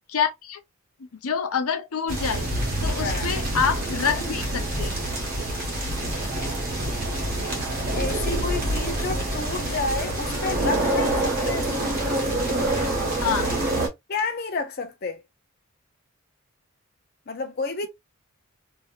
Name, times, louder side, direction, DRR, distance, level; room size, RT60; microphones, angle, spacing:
voice 1, 0.1-0.6 1.0-2.5 2.8-5.0 13.2-13.5, left 6 dB, 90° left, 0.6 m, -27 dB
sound 1, 2.1-13.9, right 1 dB, 45° right, 1.3 m, -26 dB
voice 2, 7.9-11.7 14.1-15.2 17.3-17.9, left 3 dB, 45° left, 0.5 m, -30 dB
2.8 x 2.8 x 2.4 m
head